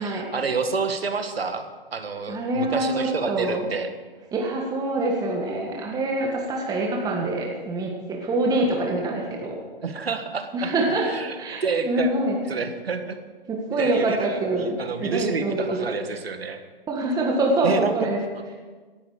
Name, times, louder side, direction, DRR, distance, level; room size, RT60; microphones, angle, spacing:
voice 1, 0.0-1.6 1.9-3.9 9.8-10.7 11.1-12.1 12.5-13.2 13.8-16.6 17.6-17.9, right 4 dB, 80° right, 8 dB, 1.8 m, -28 dB
voice 2, 2.3-3.7 4.3-9.6 10.5-11.1 11.4-12.4 13.5-15.9 16.9-18.2, right 2 dB, 10° right, 0 dB, 1.7 m, -25 dB
17.0 x 11.5 x 5.1 m, 1.4 s
hypercardioid pair, 135°, 30 cm